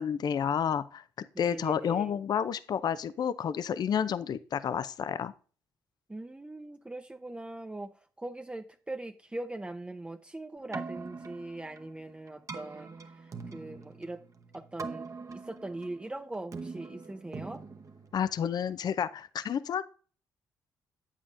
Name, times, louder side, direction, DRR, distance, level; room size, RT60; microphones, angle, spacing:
voice 1, 0.0-5.3 18.1-19.8, left 8 dB, 55° left, 14 dB, 0.4 m, -30 dB
voice 2, 1.3-2.2 6.1-7.9 8.2-12.9 13.5-14.2 14.5-17.6, right 2 dB, 15° right, 6 dB, 0.6 m, -41 dB
Keyboard (musical), 10.6-18.7, right 4 dB, 40° right, 0.9 m, -43 dB
8.5 x 7.3 x 2.5 m, 0.39 s
supercardioid pair, 65°, 8 cm